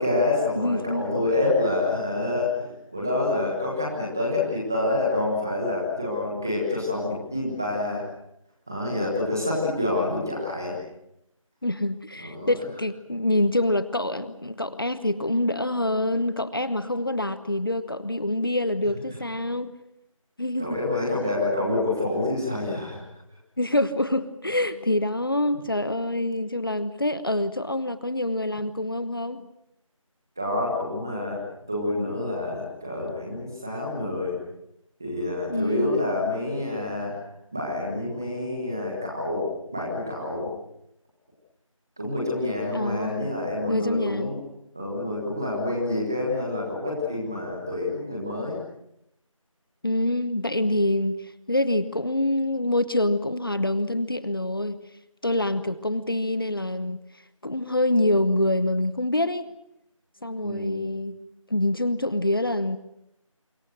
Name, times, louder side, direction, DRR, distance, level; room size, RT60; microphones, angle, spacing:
voice 1, 0.0-8.0 8.7-10.8 12.2-12.6 20.6-23.0 30.4-31.4 31.7-34.4 35.0-37.1 37.5-40.5 42.0-44.4 44.7-48.6 50.6-50.7 60.4-60.9, left 2 dB, 5° right, -3 dB, 1.4 m, -27 dB
voice 2, 0.6-1.1 11.6-19.8 20.4-20.8 23.6-29.5 35.5-36.0 42.7-43.3 43.7-44.4 49.8-54.9 55.2-57.0 57.4-59.5 60.2-61.2 61.5-62.8, left 1 dB, 40° left, 14 dB, 1.0 m, -26 dB
26.5 x 25.5 x 6.5 m, 0.81 s
figure-of-eight pair, 175°, 18 cm